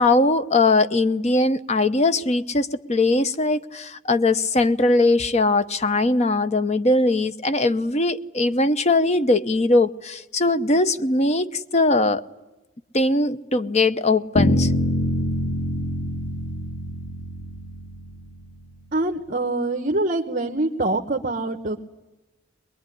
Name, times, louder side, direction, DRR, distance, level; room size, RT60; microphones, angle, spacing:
voice 1, 0.0-12.2 12.9-14.7, left 2 dB, 35° left, 0.9 m, -20 dB
sound 1, 14.4-18.4, left 1 dB, 75° left, 2.3 m, -25 dB
voice 2, 18.9-21.8, right 2 dB, 45° right, 1.1 m, -24 dB
22.5 x 22.0 x 9.9 m
head